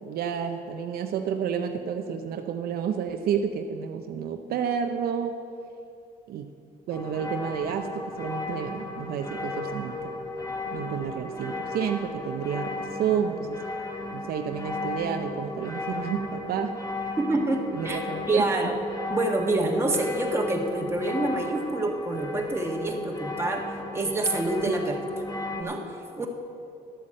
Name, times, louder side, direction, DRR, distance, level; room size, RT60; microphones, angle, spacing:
voice 1, 0.0-5.4 6.3-6.5 6.9-10.0 10.7-13.6 14.1-16.8 17.7-18.4, right 7 dB, 65° right, 6 dB, 0.7 m, -30 dB
sound 1, 6.9-25.6, left 2 dB, 20° left, 1.4 m, -35 dB
voice 2, 17.2-18.7 19.1-23.7 23.9-25.0 25.6-26.3, right 2 dB, 15° right, 2 dB, 1.5 m, -27 dB
12.0 x 8.3 x 7.6 m, 2.6 s
cardioid pair, 110°, 17 cm